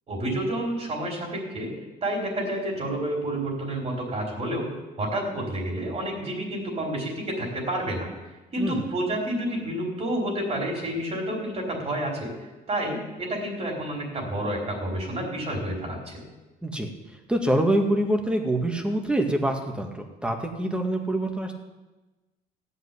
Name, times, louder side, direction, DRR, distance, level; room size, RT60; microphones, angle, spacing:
voice 1, 0.1-1.7 2.0-4.7 5.0-8.1 8.5-12.3 12.7-16.2, right 1 dB, 40° right, 0 dB, 4.1 m, -29 dB
voice 2, 8.6-8.9 16.6-16.9 17.3-21.5, right 1 dB, 5° right, 3 dB, 2.0 m, -25 dB
15.5 x 5.7 x 9.9 m, 1.1 s
cardioid pair, 110°, 17 cm